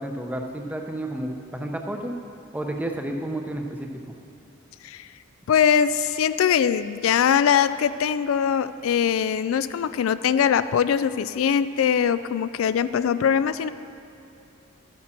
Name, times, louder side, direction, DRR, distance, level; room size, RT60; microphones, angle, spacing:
voice 1, 0.0-2.1 2.5-4.2, right 1 dB, 10° right, 3 dB, 0.7 m, -31 dB
voice 2, 5.5-13.7, left 8 dB, 85° left, 14 dB, 0.3 m, -22 dB
12.5 x 8.4 x 4.4 m, 2.6 s
head